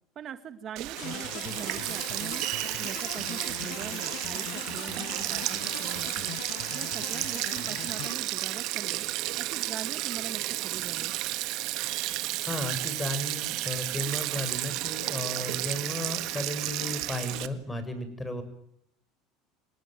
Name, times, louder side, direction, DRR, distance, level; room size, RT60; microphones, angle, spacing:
voice 1, 0.2-2.5 2.8-6.4 6.7-9.0 9.4-11.2, right 8 dB, 45° right, 10 dB, 1.9 m, -42 dB
Sink (filling or washing), 0.8-17.5, right 17 dB, 65° right, 1.8 m, -32 dB
sound 1, 1.0-8.2, left 18 dB, 65° left, 1.0 m, -40 dB
voice 2, 12.5-18.4, left 1 dB, 15° left, 10 dB, 7.4 m, -34 dB
26.5 x 19.0 x 9.4 m, 0.72 s
hypercardioid pair, 90°, 0 cm